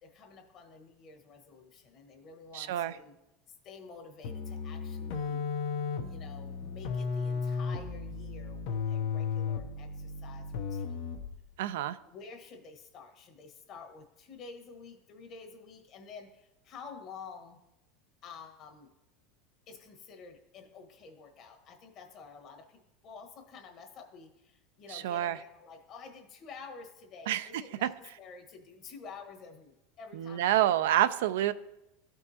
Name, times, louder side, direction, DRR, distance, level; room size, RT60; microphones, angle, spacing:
voice 1, 0.0-3.1 3.6-5.4 6.0-11.1 12.0-17.6 18.2-18.9 19.7-30.7, left 5 dB, 45° left, 4 dB, 1.3 m, -50 dB
voice 2, 2.5-2.9 11.6-12.0 24.9-25.4 27.3-27.4 27.8-27.9 30.1-31.5, right 12 dB, 80° right, 14 dB, 0.3 m, -27 dB
sound 1, 4.2-11.4, left 5 dB, 70° left, 0.7 m, -35 dB
13.0 x 4.5 x 2.8 m, 0.92 s
supercardioid pair, 115°, 0 cm